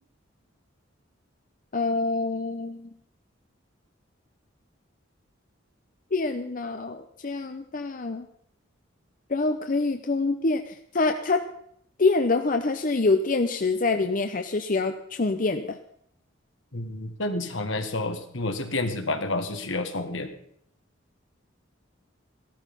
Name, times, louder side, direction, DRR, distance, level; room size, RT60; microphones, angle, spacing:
voice 1, 1.7-2.9 6.1-8.3 9.3-11.4 12.0-15.8, left 3 dB, 45° left, 7 dB, 0.7 m, -26 dB
voice 2, 16.7-20.3, left 2 dB, 75° left, 6 dB, 1.8 m, -29 dB
15.0 x 13.0 x 5.4 m, 0.67 s
head